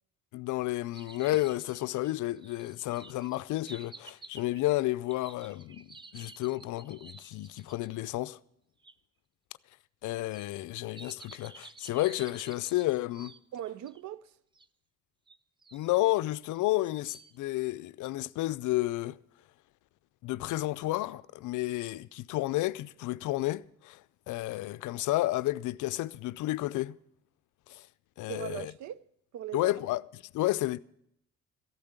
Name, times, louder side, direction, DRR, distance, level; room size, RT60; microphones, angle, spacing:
voice 1, 0.3-8.4 10.0-13.3 15.7-19.2 20.2-24.0 24.3-27.0 27.7-27.9 28.2-28.7 29.5-30.8, left 17 dB, 80° left, 0.5 m, -31 dB
sound 1, 0.9-7.9 8.8-8.9 10.3-14.0 14.5-14.7 15.3-15.9 16.5-17.4, right 3 dB, 15° right, 0.4 m, -52 dB
voice 2, 13.5-14.3 28.3-29.0 29.3-29.7, right 11 dB, 70° right, 0.6 m, -39 dB
14.0 x 8.7 x 8.1 m
cardioid pair, 90°, 30 cm